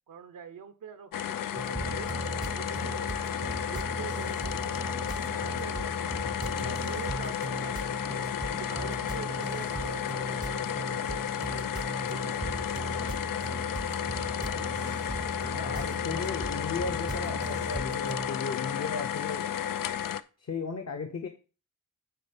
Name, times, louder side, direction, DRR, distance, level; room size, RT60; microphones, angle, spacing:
voice 1, 0.1-3.2 3.7-6.2 6.6-8.1 8.5-10.1 10.4-11.6 12.0-13.0, right 7 dB, 85° right, 0.8 m, -45 dB
sound 1, 1.1-20.2, left 10 dB, 90° left, 0.5 m, -33 dB
sound 2, 1.5-18.3, right 3 dB, 15° right, 0.5 m, -38 dB
voice 2, 15.5-19.5 20.4-21.3, left 4 dB, 55° left, 1.0 m, -35 dB
9.3 x 4.2 x 5.1 m
wide cardioid pair, 90°, 33 cm